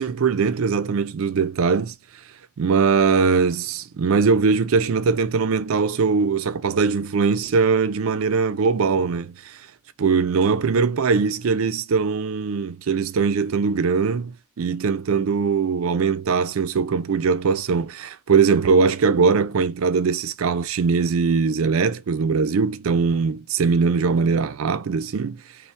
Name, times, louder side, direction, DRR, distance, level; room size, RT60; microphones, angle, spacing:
voice 1, 0.0-1.9 2.6-9.6 10.0-25.4, right 5 dB, 80° right, 0.4 m, -21 dB
5.4 x 2.1 x 3.2 m
head